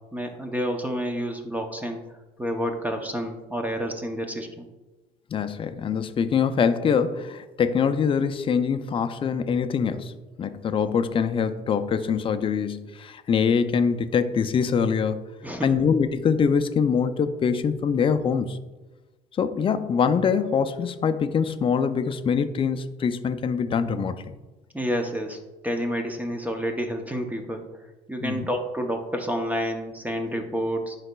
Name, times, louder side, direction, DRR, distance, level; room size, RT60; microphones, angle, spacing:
voice 1, 0.1-2.0 2.4-4.7 15.4-15.8 24.7-27.6 28.1-31.0, equal, 10° right, 0.6 m, -29 dB
voice 2, 5.3-10.1 10.4-15.3 15.6-18.6 19.4-24.4 28.2-28.5, left 6 dB, 30° left, 0.4 m, -24 dB
10.5 x 4.0 x 2.3 m
cardioid pair, 110°, 17 cm